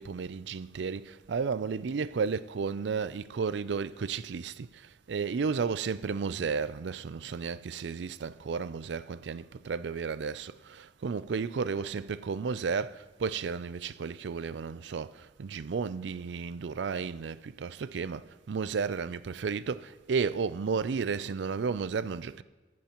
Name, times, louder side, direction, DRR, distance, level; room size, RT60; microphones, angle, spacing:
voice 1, 0.0-22.4, right 5 dB, 75° right, 0.4 m, -33 dB
22.5 x 10.5 x 3.0 m
head